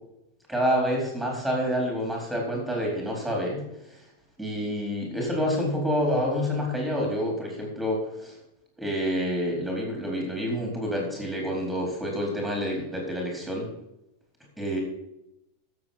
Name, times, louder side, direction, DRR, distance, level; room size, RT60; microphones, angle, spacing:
voice 1, 0.5-3.6 4.4-8.3 8.8-13.7 14.6-14.8, equal, ahead, 0 dB, 4.2 m, -28 dB
13.0 x 7.9 x 5.9 m, 0.85 s
supercardioid pair, 165°, 0 cm